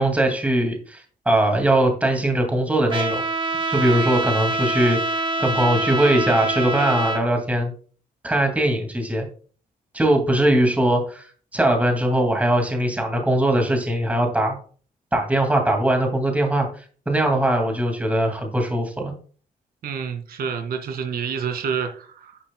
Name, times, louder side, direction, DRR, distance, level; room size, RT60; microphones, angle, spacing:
voice 1, 0.0-3.2 3.7-7.7 8.2-9.3 9.9-11.2 11.5-14.6 15.1-16.7 17.1-19.1, right 1 dB, 10° right, 3 dB, 2.2 m, -21 dB
Trumpet, 2.9-7.2, right 2 dB, 35° right, 1.3 m, -25 dB
voice 2, 19.8-22.4, right 7 dB, 85° right, 6 dB, 2.2 m, -28 dB
11.0 x 9.8 x 2.2 m, 0.41 s
wide cardioid pair, 165°, 15 cm